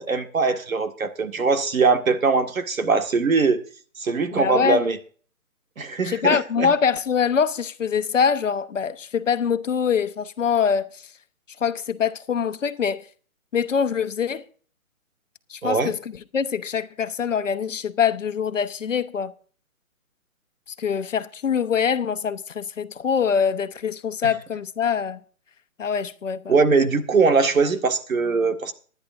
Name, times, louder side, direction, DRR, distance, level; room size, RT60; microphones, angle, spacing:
voice 1, 0.0-3.6 4.0-5.0 5.8-6.7 15.6-15.9 26.5-28.7, right 4 dB, 70° right, 1.9 m, -21 dB
voice 2, 4.3-4.8 6.0-11.1 11.6-13.1 13.5-14.5 15.5-16.0 16.3-19.3 20.7-25.2 25.8-26.5, left 7 dB, 60° left, 1.1 m, -24 dB
19.5 x 10.5 x 2.6 m
hypercardioid pair, 170°, 42 cm